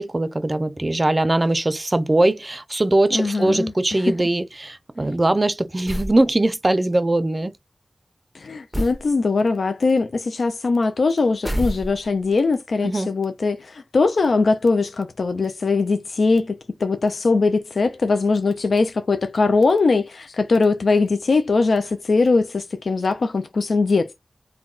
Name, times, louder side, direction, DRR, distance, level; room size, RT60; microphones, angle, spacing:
voice 1, 0.0-7.5 12.8-13.1, right 2 dB, 35° right, 0.5 m, -21 dB
voice 2, 3.1-3.7 8.3-24.2, left 3 dB, 85° left, 0.3 m, -21 dB
sound 1, 5.9-6.2 8.7-9.1 11.4-12.2, equal, ahead, 0.8 m, -27 dB
2.3 x 2.2 x 3.5 m
cardioid pair, 45°, 0 cm